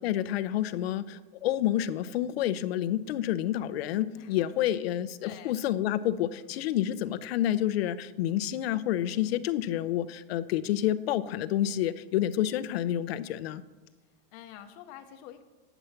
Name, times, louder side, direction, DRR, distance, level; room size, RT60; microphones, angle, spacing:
voice 1, 0.0-13.6, left 12 dB, 85° left, 14 dB, 0.7 m, -29 dB
voice 2, 4.2-4.6 5.2-5.6 6.3-6.5 9.1-9.4 14.3-15.4, left 10 dB, 40° left, 7 dB, 0.7 m, -48 dB
9.3 x 8.0 x 5.7 m, 1.2 s
supercardioid pair, 165°, 30 cm